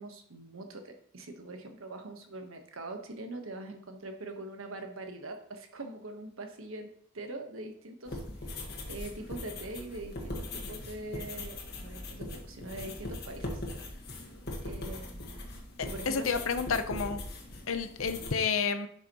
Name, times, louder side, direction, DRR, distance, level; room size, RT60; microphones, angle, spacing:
voice 1, 0.0-8.2 8.6-13.6 14.6-15.4 15.8-16.4, right 2 dB, 85° right, 5 dB, 1.2 m, -43 dB
sound 1, 8.1-18.3, left 2 dB, 50° left, 1.6 m, -40 dB
voice 2, 15.8-17.2 17.7-18.9, left 5 dB, 90° left, 9 dB, 0.7 m, -30 dB
10.5 x 5.7 x 3.0 m, 0.65 s
head